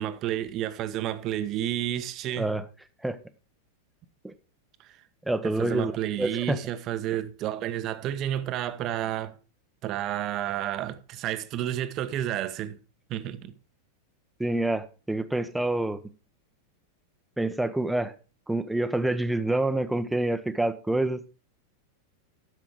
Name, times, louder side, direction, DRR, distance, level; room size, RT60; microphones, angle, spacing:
voice 1, 0.0-2.5 4.8-5.0 5.4-9.3 9.8-12.8 13.1-13.5, right 12 dB, 35° right, 1.1 m, -31 dB
voice 2, 5.3-5.9 6.2-6.6 14.4-16.0 17.4-18.1 18.5-21.2, right 2 dB, 5° right, 1.0 m, -27 dB
12.0 x 7.4 x 4.7 m
figure-of-eight pair, 90°, 0 cm